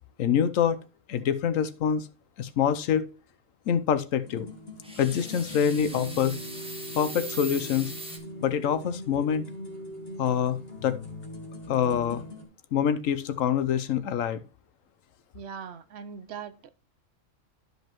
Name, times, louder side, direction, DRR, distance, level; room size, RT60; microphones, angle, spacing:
voice 1, 0.2-0.8 1.1-2.1 2.4-3.1 3.7-4.5 5.0-6.4 6.9-7.9 8.4-9.4 10.2-11.0 11.7-12.2 12.7-14.4, left 8 dB, 85° left, 1.1 m, -25 dB
sound 1, 4.2-12.5, equal, 50° left, 2.2 m, -41 dB
sound 2, 4.8-8.2, right 2 dB, 5° right, 1.4 m, -40 dB
voice 2, 15.3-16.7, right 7 dB, 65° right, 0.9 m, -40 dB
12.0 x 5.4 x 3.0 m
omnidirectional pair, 1.3 m